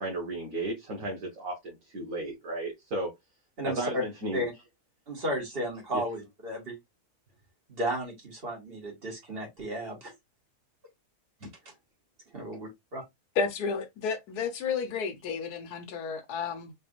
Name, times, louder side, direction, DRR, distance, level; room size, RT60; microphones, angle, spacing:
voice 1, 0.0-3.1 3.6-4.4 5.9-6.0, right 2 dB, 60° right, 1.6 m, -34 dB
voice 2, 3.6-4.0 4.3-4.5 5.1-6.8 7.7-10.1 11.7-11.8 12.3-13.0, equal, 40° right, 1.8 m, -34 dB
voice 3, 13.4-16.7, left 5 dB, 80° left, 1.3 m, -32 dB
4.1 x 3.3 x 2.4 m
omnidirectional pair, 1.7 m